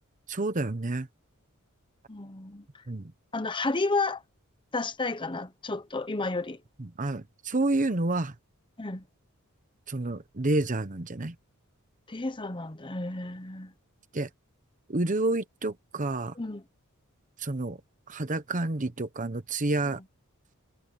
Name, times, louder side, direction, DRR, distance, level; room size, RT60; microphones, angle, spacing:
voice 1, 0.3-1.1 2.9-3.1 6.8-8.3 9.9-11.3 14.1-14.3 14.9-16.3 17.4-17.8 18.1-20.0, right 2 dB, 35° right, 0.9 m, -29 dB
voice 2, 2.1-2.6 3.3-4.2 4.7-6.6 8.8-9.0 12.1-13.7 16.4-16.6, left 3 dB, 20° left, 1.0 m, -31 dB
head